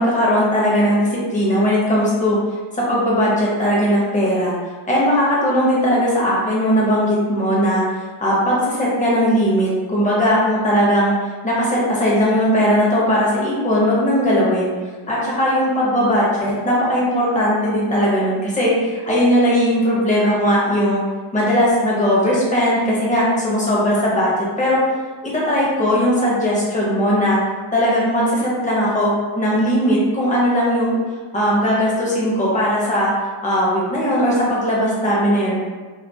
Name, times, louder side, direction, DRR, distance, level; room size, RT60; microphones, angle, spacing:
voice 1, 0.0-2.4 2.7-4.5 4.9-7.8 8.2-11.1 11.4-14.7 15.1-21.0 21.3-24.8 25.3-27.4 27.7-31.0 31.3-33.1 33.4-35.5, equal, 15° left, -6 dB, 0.5 m, -18 dB
2.3 x 2.2 x 2.6 m, 1.4 s
wide cardioid pair, 170°, 50 cm